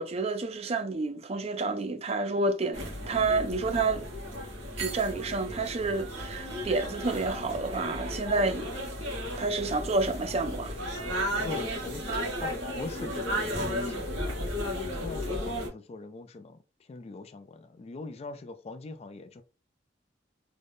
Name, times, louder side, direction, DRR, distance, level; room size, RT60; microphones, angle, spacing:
voice 1, 0.0-4.0 4.8-8.7 9.4-10.8, right 3 dB, 35° right, 0.4 m, -29 dB
sound 1, 2.7-15.7, equal, 90° right, 1.3 m, -34 dB
voice 2, 11.4-12.0 12.4-14.5 14.9-19.4, left 3 dB, 35° left, 0.3 m, -42 dB
3.7 x 2.1 x 3.4 m
head